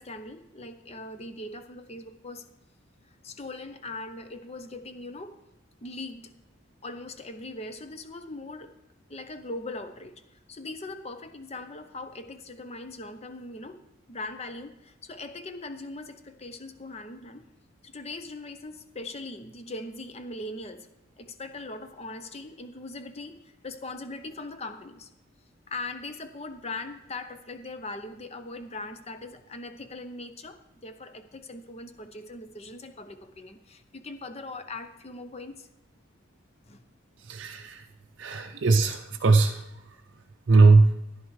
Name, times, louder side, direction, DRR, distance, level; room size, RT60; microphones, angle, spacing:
voice 1, 0.0-2.5 3.1-5.4 5.8-6.3 6.8-8.7 9.1-10.2 10.5-13.8 14.1-17.5 17.8-20.9 21.2-25.1 25.7-35.7 36.6-36.8 38.4-38.6, left 2 dB, 30° left, 8 dB, 0.7 m, -40 dB
voice 2, 37.3-37.8 38.2-39.6 40.5-40.9, right 3 dB, 60° right, 3 dB, 0.5 m, -19 dB
14.0 x 11.0 x 3.2 m, 0.86 s
head